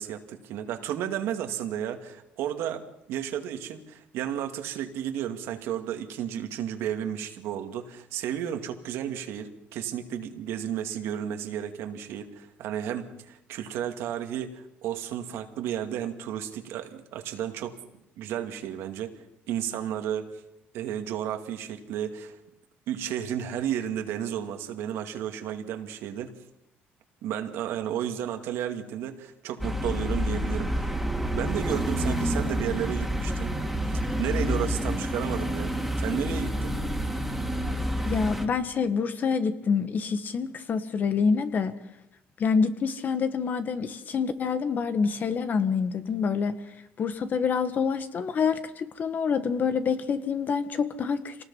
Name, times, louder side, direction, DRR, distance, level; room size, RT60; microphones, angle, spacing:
voice 1, 0.0-17.8 18.2-19.1 19.5-20.4 20.7-22.4 22.9-26.4 27.2-30.9 31.3-33.5 34.2-36.7, right 10 dB, 85° right, 5 dB, 2.3 m, -33 dB
sound 1, 29.6-38.4, equal, ahead, 2.8 m, -28 dB
voice 2, 38.0-41.8 42.4-46.6 47.0-51.4, left 5 dB, 45° left, 10 dB, 1.7 m, -27 dB
26.5 x 19.0 x 5.7 m, 0.83 s
cardioid pair, 110°, 4 cm